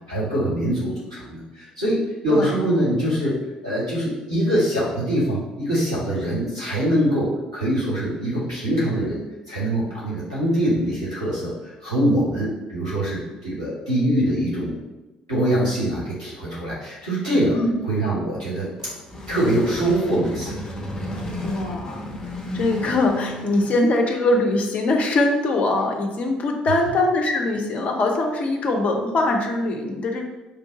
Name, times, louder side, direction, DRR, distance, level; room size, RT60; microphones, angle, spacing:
voice 1, 0.1-9.2 9.5-14.7 15.3-17.6 17.8-18.7 19.3-20.6 26.6-26.7, right 1 dB, 90° right, -9 dB, 1.0 m, -23 dB
sound 1, 18.6-23.9, left 1 dB, 20° left, 0.9 m, -33 dB
voice 2, 21.4-22.1 22.5-30.2, left 2 dB, 40° left, 2 dB, 0.5 m, -22 dB
3.3 x 2.5 x 3.6 m, 1.1 s
figure-of-eight pair, 50°, 4 cm